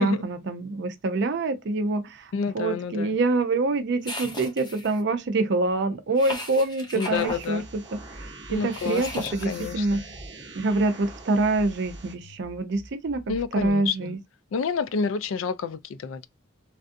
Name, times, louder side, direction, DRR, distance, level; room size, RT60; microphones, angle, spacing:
voice 1, 0.0-10.0 10.5-13.2 13.5-14.2, right 2 dB, 60° right, 0.5 m, -26 dB
voice 2, 2.3-3.2 6.9-7.6 8.5-10.0 13.3-14.2 14.5-16.3, left 5 dB, 75° left, 0.3 m, -29 dB
sound 1, 4.0-5.0 6.2-7.4 8.7-9.7, left 1 dB, 20° left, 0.7 m, -36 dB
sound 2, 7.2-12.1, right 3 dB, 25° right, 1.0 m, -45 dB
sound 3, 7.3-10.3 10.7-13.7, equal, 50° left, 1.0 m, -46 dB
3.3 x 2.5 x 2.5 m
head